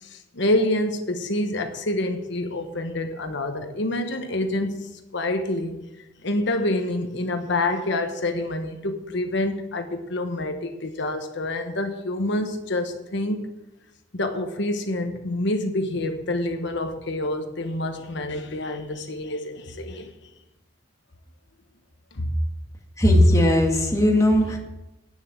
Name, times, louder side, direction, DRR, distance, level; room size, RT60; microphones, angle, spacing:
voice 1, 0.0-4.9 5.1-5.8 6.2-13.5 14.1-20.1 22.1-22.3 24.4-24.6, left 1 dB, 65° left, 6 dB, 1.2 m, -27 dB
voice 2, 23.0-24.6, left 1 dB, 15° left, 0 dB, 1.9 m, -18 dB
9.4 x 6.9 x 9.0 m, 0.96 s
head